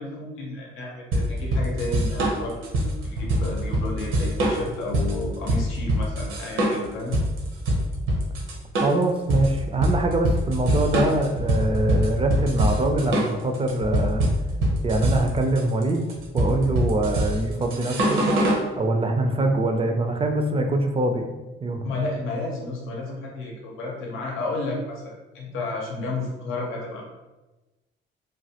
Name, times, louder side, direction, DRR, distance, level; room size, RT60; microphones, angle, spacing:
voice 1, 0.0-7.2 21.8-27.0, left 2 dB, 90° left, -1 dB, 0.7 m, -32 dB
sound 1, 1.1-18.7, right 1 dB, 80° right, 0.7 m, -24 dB
voice 2, 8.8-14.2 14.8-18.2 18.8-21.3 21.6-21.9, right 2 dB, 30° right, 4 dB, 0.4 m, -24 dB
3.1 x 2.2 x 2.8 m, 1.1 s
cardioid pair, 90°, 20 cm